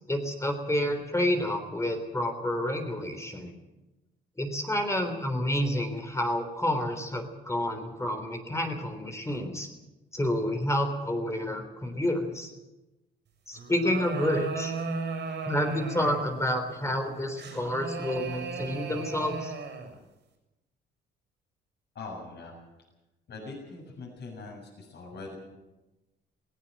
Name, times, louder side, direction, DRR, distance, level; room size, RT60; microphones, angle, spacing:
voice 1, 0.1-3.5 4.4-9.7 10.1-12.5 13.5-14.7 15.5-19.5, left 1 dB, 15° left, 5 dB, 3.5 m, -29 dB
sound 1, 13.5-16.4 17.4-20.0, right 5 dB, 60° right, 6.8 m, -36 dB
voice 2, 22.0-22.6 23.3-25.4, left 3 dB, 60° left, -1 dB, 7.0 m, -42 dB
18.0 x 17.0 x 9.2 m, 1.0 s
cardioid pair, 90°, 20 cm